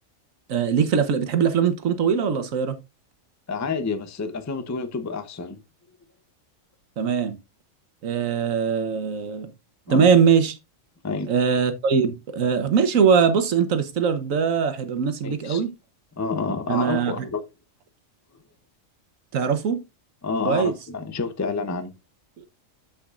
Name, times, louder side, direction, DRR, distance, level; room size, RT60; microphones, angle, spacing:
voice 1, 0.5-2.8 7.0-7.4 8.0-9.5 9.9-10.6 11.3-15.7 16.7-17.2 19.3-19.8 20.5-20.7, right 6 dB, 80° right, 1.4 m, -21 dB
voice 2, 3.5-5.6 9.9-10.1 11.0-11.3 15.2-15.6 16.2-17.4 20.2-21.9, left 4 dB, 20° left, 0.5 m, -29 dB
13.0 x 5.2 x 2.5 m
omnidirectional pair, 1.4 m